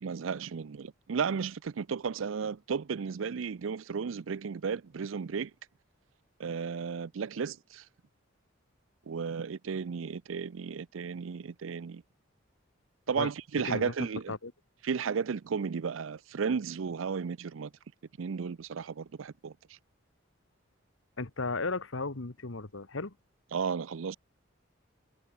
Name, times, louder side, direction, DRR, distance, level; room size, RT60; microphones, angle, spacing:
voice 1, 0.0-5.5 6.4-7.8 9.1-12.0 13.1-14.4 14.8-17.7 18.2-19.8 23.5-24.2, right 6 dB, 80° right, 0.5 m, -34 dB
voice 2, 21.2-23.1, left 3 dB, 80° left, 1.5 m, -35 dB
head